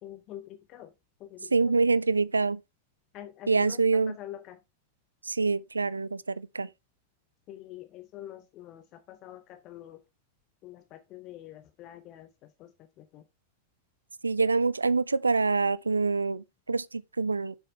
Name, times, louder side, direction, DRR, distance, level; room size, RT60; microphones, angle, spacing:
voice 1, 0.0-0.9 1.2-1.8 3.1-4.6 7.5-10.0 10.6-13.2, left 12 dB, 35° left, 0.7 m, -46 dB
voice 2, 1.5-2.6 3.5-4.1 5.2-6.7 14.2-17.6, right 4 dB, 80° right, 0.3 m, -26 dB
7.2 x 6.6 x 3.3 m
figure-of-eight pair, 90°, 0 cm